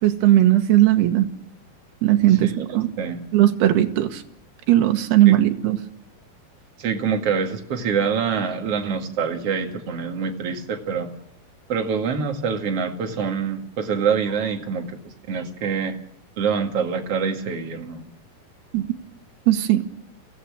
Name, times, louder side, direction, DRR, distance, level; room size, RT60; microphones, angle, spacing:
voice 1, 0.0-1.3 2.0-2.9 3.3-4.2 4.7-5.8 18.7-18.9 19.5-19.8, right 13 dB, 85° right, 6 dB, 3.3 m, -17 dB
voice 2, 6.8-11.1 11.7-15.0 15.3-16.0 16.4-18.1, right 6 dB, 45° right, 3 dB, 2.5 m, -25 dB
24.0 x 16.0 x 7.5 m, 0.69 s
omnidirectional pair, 4.5 m